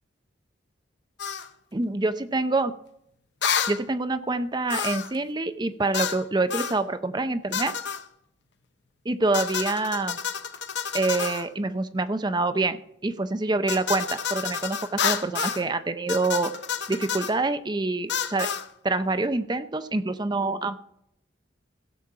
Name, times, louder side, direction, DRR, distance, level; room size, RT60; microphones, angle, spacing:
sound 1, 1.2-1.5 3.4-3.8 4.7-5.2 5.9-6.2 6.5-6.8 7.5-8.0 9.3-11.5 13.7-15.6 16.1-17.3 18.1-18.7, left 7 dB, 60° left, 0.8 m, -29 dB
voice 1, 1.7-2.8 3.7-7.8 9.0-10.2 10.9-16.5 16.9-18.5 18.8-20.8, right 2 dB, 20° right, 11 dB, 0.5 m, -26 dB
16.0 x 7.1 x 4.8 m, 0.76 s
head